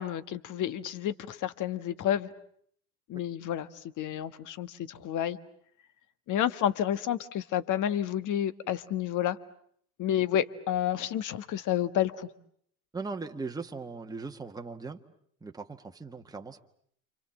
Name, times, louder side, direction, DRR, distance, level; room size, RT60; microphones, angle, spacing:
voice 1, 0.0-2.3 3.1-3.7 4.0-5.4 6.3-9.4 10.0-12.3, left 10 dB, 45° left, 1.5 m, -30 dB
voice 2, 12.9-15.0 15.4-16.6, right 4 dB, 10° right, 1.7 m, -39 dB
29.0 x 26.0 x 7.4 m
hypercardioid pair, 85°, 43 cm